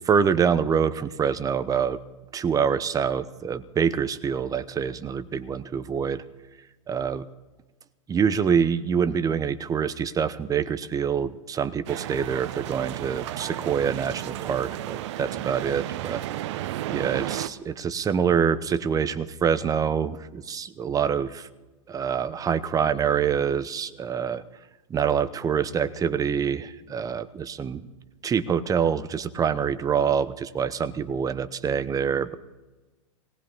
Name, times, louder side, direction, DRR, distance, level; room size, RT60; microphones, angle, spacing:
voice 1, 0.0-2.0 2.3-6.2 6.9-7.3 8.1-16.2 16.9-21.5 21.9-24.4 24.9-27.8 28.2-32.4, right 7 dB, 20° right, 14 dB, 0.8 m, -25 dB
sound 1, 11.9-17.5, right 13 dB, 55° right, 0.7 m, -33 dB
18.5 x 18.0 x 4.0 m, 1.1 s
hypercardioid pair, 100°, 17 cm